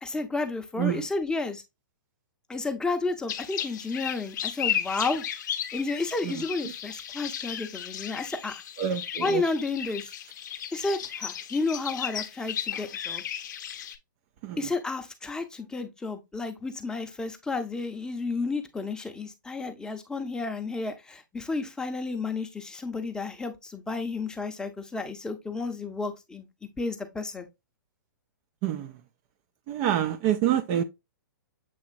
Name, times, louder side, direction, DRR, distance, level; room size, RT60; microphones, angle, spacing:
voice 1, 0.0-1.6 2.5-5.2 5.7-8.6 9.2-10.1 10.7-13.2 14.6-26.5 26.8-27.5, left 3 dB, 5° left, 0.7 m, -32 dB
sound 1, 3.3-14.0, left 9 dB, 60° left, 0.6 m, -35 dB
voice 2, 8.8-9.4 14.4-14.6 28.6-28.9 29.7-30.8, right 10 dB, 35° right, 0.4 m, -26 dB
7.3 x 2.9 x 2.5 m
hypercardioid pair, 125°, 11 cm